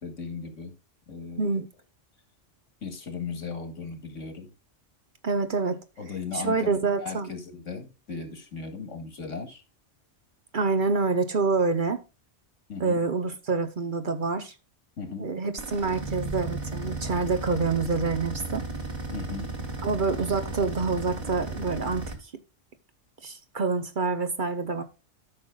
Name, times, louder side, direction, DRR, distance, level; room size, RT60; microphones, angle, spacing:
voice 1, 0.0-0.7 1.1-1.6 2.8-4.5 6.0-9.6 12.7-13.0 15.0-15.3 19.1-19.5, left 5 dB, 85° left, 2.2 m, -37 dB
voice 2, 5.2-5.8 6.3-7.3 10.5-12.0 12.8-14.5 15.2-18.7 19.8-22.0 23.2-24.8, right 4 dB, 45° right, 0.9 m, -27 dB
sound 1, 15.6-22.1, right 2 dB, 30° right, 1.6 m, -35 dB
13.0 x 6.0 x 2.3 m
omnidirectional pair, 1.3 m